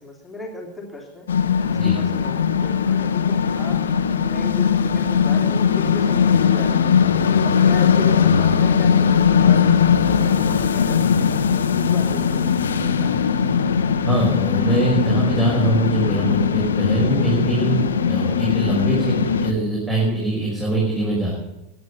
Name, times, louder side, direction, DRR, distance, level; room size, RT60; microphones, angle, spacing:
voice 1, 0.0-1.5 1.8-3.8 4.2-6.9 7.4-11.4 11.8-13.3, left 2 dB, 5° left, -1 dB, 3.1 m, -36 dB
sound 1, 1.3-19.5, left 7 dB, 65° left, 1.1 m, -19 dB
voice 2, 14.0-17.8 18.1-21.3, right 2 dB, 15° right, -4 dB, 5.4 m, -22 dB
21.5 x 10.0 x 5.4 m, 0.94 s
figure-of-eight pair, 90°, 0 cm